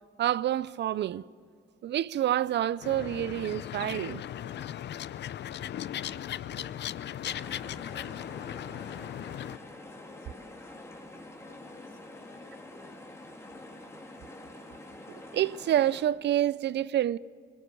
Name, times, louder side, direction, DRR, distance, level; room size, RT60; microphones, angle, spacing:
voice 1, 0.2-1.2 1.8-4.2 6.5-6.7 15.3-17.2, right 12 dB, 60° right, 0.5 m, -28 dB
sound 1, 2.8-9.6, left 11 dB, 60° left, 0.6 m, -37 dB
sound 2, 7.2-16.0, left 1 dB, 15° left, 2.9 m, -46 dB
voice 2, 8.1-11.0 11.4-13.0, left 6 dB, 80° left, 3.8 m, -57 dB
24.0 x 20.0 x 8.3 m
cardioid pair, 90°, 20 cm